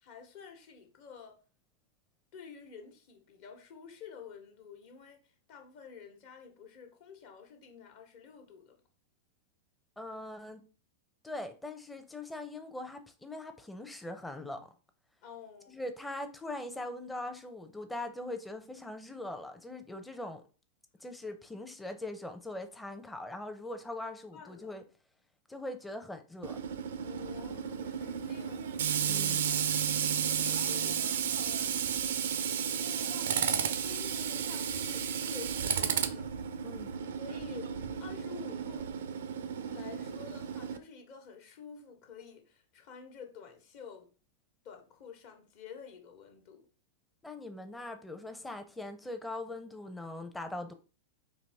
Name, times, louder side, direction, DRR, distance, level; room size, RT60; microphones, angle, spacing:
voice 1, 0.0-1.4 2.3-5.2 5.5-8.8 15.2-15.8 24.3-24.7 27.0-29.7 30.3-31.0 31.4-31.7 32.8-36.3 37.1-37.7 38.0-38.9 39.7-44.1 44.6-46.7, left 6 dB, 50° left, 1.1 m, -50 dB
voice 2, 10.0-10.6 11.2-14.7 15.7-20.4 21.0-24.8 25.5-26.6 29.1-29.4 36.6-36.9 47.2-50.7, left 2 dB, 5° left, 0.6 m, -41 dB
Tools, 26.4-40.8, right 8 dB, 70° right, 0.4 m, -33 dB
4.0 x 2.7 x 3.4 m
hypercardioid pair, 100°, 0 cm